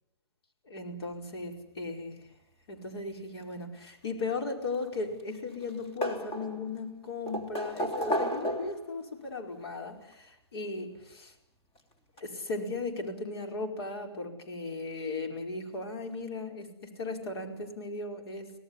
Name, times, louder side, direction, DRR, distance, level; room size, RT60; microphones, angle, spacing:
voice 1, 0.7-2.2 2.7-11.3 12.2-18.5, left 3 dB, 70° left, 3 dB, 5.0 m, -37 dB
sound 1, 4.7-5.4 5.6-6.8 7.3-8.9 10.1-10.2 11.8-11.9 12.2-12.3, equal, 25° left, 3.5 m, -33 dB
25.5 x 17.5 x 9.9 m, 0.84 s
hypercardioid pair, 155°, 14 cm